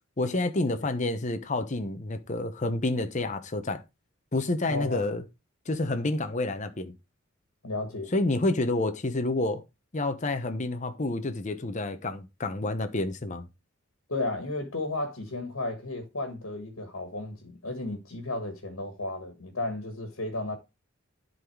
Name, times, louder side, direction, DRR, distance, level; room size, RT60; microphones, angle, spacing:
voice 1, 0.2-3.8 4.3-5.2 5.7-6.9 8.1-9.6 9.9-13.5, left 2 dB, 35° left, 0.8 m, -29 dB
voice 2, 4.7-5.0 7.6-8.1 14.1-20.6, left 2 dB, 80° left, 1.7 m, -33 dB
11.0 x 4.0 x 4.6 m
head